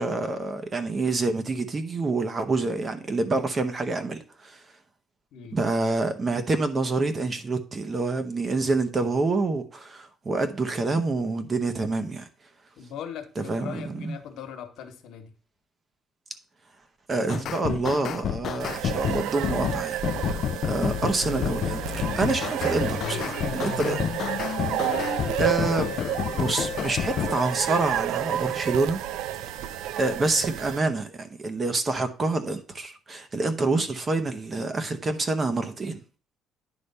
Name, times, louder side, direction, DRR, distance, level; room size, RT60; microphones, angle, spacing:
voice 1, 0.0-4.6 5.5-12.3 13.4-14.2 17.1-20.4 20.6-23.2 23.5-24.0 25.4-25.9 26.3-29.0 30.0-36.0, right 3 dB, 30° right, 0.9 m, -27 dB
voice 2, 12.8-15.3 23.0-24.4 24.6-26.1, left 8 dB, 75° left, 1.3 m, -40 dB
sound 1, 17.3-27.4, left 10 dB, 55° left, 0.3 m, -30 dB
sound 2, 18.6-30.8, right 12 dB, 85° right, 0.4 m, -31 dB
9.9 x 3.3 x 5.4 m
cardioid pair, 135°, 0 cm